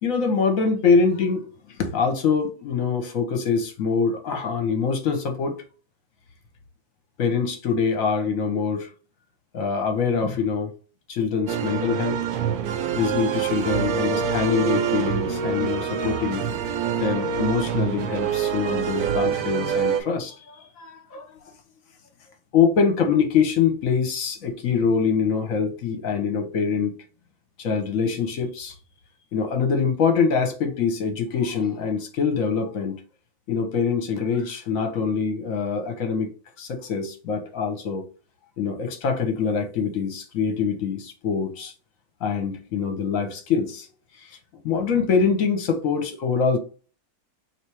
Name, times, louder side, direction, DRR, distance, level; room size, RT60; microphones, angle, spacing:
voice 1, 0.0-5.6 7.2-8.9 9.5-10.7 11.1-12.2 12.9-16.5 17.0-21.4 22.5-26.9 27.6-28.7 29.3-33.0 33.5-36.3 36.6-38.1 38.6-41.7 42.2-43.9 44.1-44.4 44.6-46.6, left 5 dB, 60° left, 1.0 m, -24 dB
sound 1, 11.5-20.0, right 7 dB, 70° right, 1.0 m, -25 dB
3.2 x 2.9 x 4.6 m
omnidirectional pair, 1.9 m